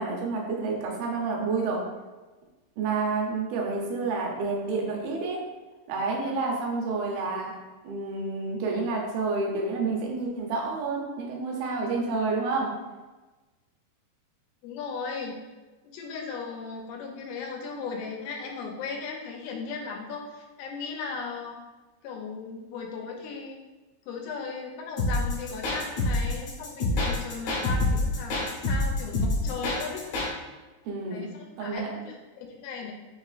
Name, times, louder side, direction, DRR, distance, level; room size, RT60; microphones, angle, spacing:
voice 1, 0.0-1.8 2.8-5.4 5.9-7.6 7.8-12.7 30.9-31.3 31.6-31.9, right 3 dB, 75° right, -1 dB, 2.2 m, -29 dB
voice 2, 14.6-15.4 15.9-21.6 22.0-23.6 24.1-30.1 31.1-32.9, left 5 dB, 85° left, 1 dB, 2.5 m, -37 dB
sound 1, 25.0-30.3, left 2 dB, 65° left, 1.8 m, -26 dB
6.0 x 2.8 x 2.4 m, 1.2 s
omnidirectional pair, 4.7 m